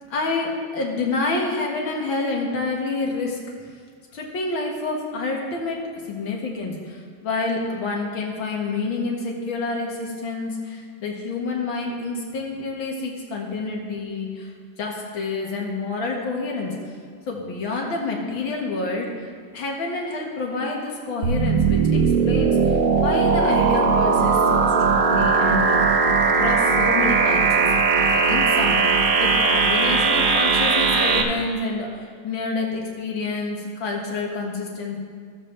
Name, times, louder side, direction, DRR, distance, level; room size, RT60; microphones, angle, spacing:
voice 1, 0.1-3.4 4.1-14.5 14.8-16.8 17.3-19.3 19.5-26.0 26.4-27.7 28.3-28.9 29.2-35.0, left 3 dB, 85° left, -1 dB, 2.4 m, -28 dB
sound 1, 21.2-31.2, right 5 dB, 70° right, 1.5 m, -19 dB
16.0 x 7.2 x 3.3 m, 2.1 s
omnidirectional pair, 2.1 m